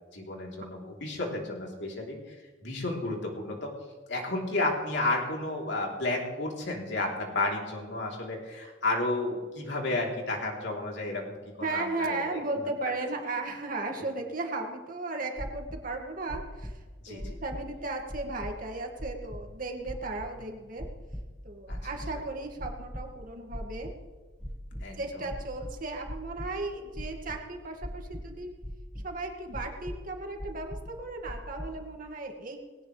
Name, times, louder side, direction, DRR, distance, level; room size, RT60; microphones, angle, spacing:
voice 1, 0.1-2.4 2.6-3.7 4.1-12.4 17.0-17.4 21.7-21.8 24.8-25.3, left 2 dB, 65° left, -1 dB, 3.7 m, -32 dB
voice 2, 11.6-20.9 21.4-23.9 25.0-28.5 29.0-32.7, right 2 dB, 50° right, 2 dB, 2.2 m, -36 dB
sound 1, 15.4-15.8 16.3-16.7 17.2-17.7 18.1-18.5 19.0-19.4 19.9-20.3 20.8-21.2 21.7-22.2 22.6-23.1 23.5-24.0 24.4-24.8 25.3-26.5 26.9-27.4 27.8-28.3 28.6-29.1 29.5-30.0 30.4-30.9 31.3-31.7, equal, 5° left, 1.5 m, -38 dB
20.0 x 17.5 x 3.4 m, 1.3 s
head